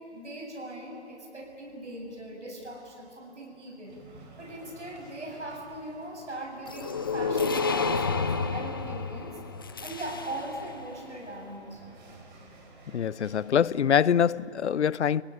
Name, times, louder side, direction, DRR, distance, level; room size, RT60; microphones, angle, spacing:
voice 1, 0.0-3.9 4.4-9.4 9.8-11.8, right 1 dB, 90° right, 7.9 m, -40 dB
sound 1, 3.8-14.5, right 2 dB, 45° right, 5.0 m, -53 dB
sound 2, 6.7-10.7, left 4 dB, 20° left, 0.5 m, -30 dB
voice 2, 12.9-15.2, left 8 dB, 75° left, 0.6 m, -24 dB
26.0 x 18.0 x 9.5 m
figure-of-eight pair, 155°, 34 cm